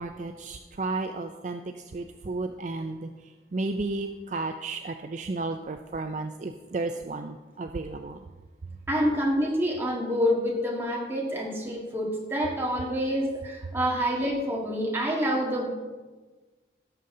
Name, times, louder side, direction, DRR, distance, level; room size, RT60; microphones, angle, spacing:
voice 1, 0.0-8.2, right 3 dB, 40° right, 6 dB, 0.4 m, -33 dB
voice 2, 8.9-15.7, equal, 15° right, -3 dB, 1.8 m, -27 dB
17.0 x 6.7 x 3.8 m, 1.3 s
head